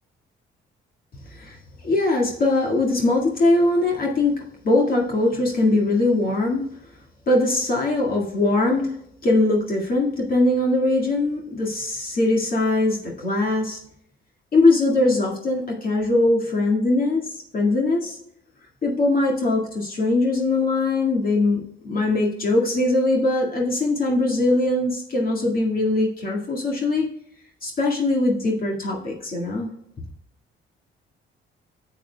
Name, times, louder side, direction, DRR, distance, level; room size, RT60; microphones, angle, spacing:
voice 1, 1.8-4.4 4.6-6.7 7.3-8.9 9.2-13.8 14.5-18.2 18.8-27.1 27.6-29.7, left 2 dB, 45° left, -2 dB, 2.0 m, -21 dB
10.5 x 7.6 x 2.3 m, 0.74 s
cardioid pair, 90°, 20 cm